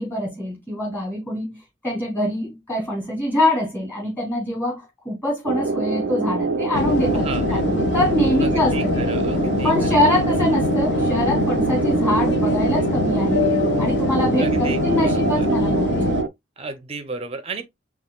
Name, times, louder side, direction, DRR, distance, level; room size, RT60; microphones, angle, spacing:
voice 1, 0.0-1.6 1.8-9.1 9.6-13.4 13.8-16.2, left 1 dB, 10° left, 2.7 m, -24 dB
sound 1, 5.4-16.3, right 4 dB, 70° right, 0.4 m, -24 dB
sound 2, 6.7-16.2, left 4 dB, 65° left, 0.5 m, -24 dB
voice 2, 7.1-7.7 8.4-9.9 13.7-13.9 14.4-15.5 16.6-17.6, right 4 dB, 35° right, 0.6 m, -34 dB
5.5 x 3.1 x 2.3 m
head